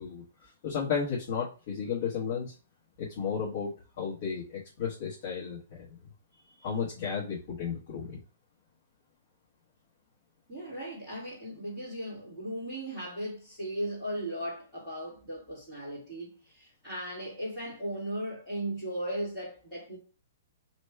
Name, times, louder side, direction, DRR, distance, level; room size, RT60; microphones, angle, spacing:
voice 1, 0.0-2.5 3.0-6.0 6.6-8.2, left 6 dB, 35° left, 1.2 m, -34 dB
voice 2, 10.5-20.0, right 1 dB, 5° right, 2.2 m, -37 dB
3.4 x 3.0 x 4.4 m
hypercardioid pair, 175°, 0 cm